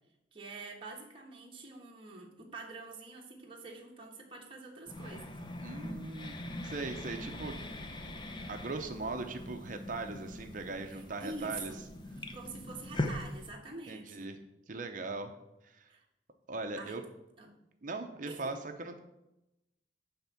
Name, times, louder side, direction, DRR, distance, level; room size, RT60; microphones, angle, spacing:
voice 1, 0.3-5.4 10.9-11.8 12.3-14.3 15.9-16.0 16.8-17.0 17.4-17.5 18.3-18.5, right 3 dB, 30° right, -1 dB, 1.3 m, -46 dB
sound 1, 4.9-13.5, left 1 dB, 25° left, 0.7 m, -41 dB
voice 2, 5.6-6.3 6.6-7.5 8.5-11.7 13.9-14.4 14.7-15.4 15.6-15.9 16.5-17.0 17.8-19.0, right 3 dB, 45° right, 6 dB, 0.7 m, -39 dB
10.0 x 3.6 x 6.8 m, 0.91 s
head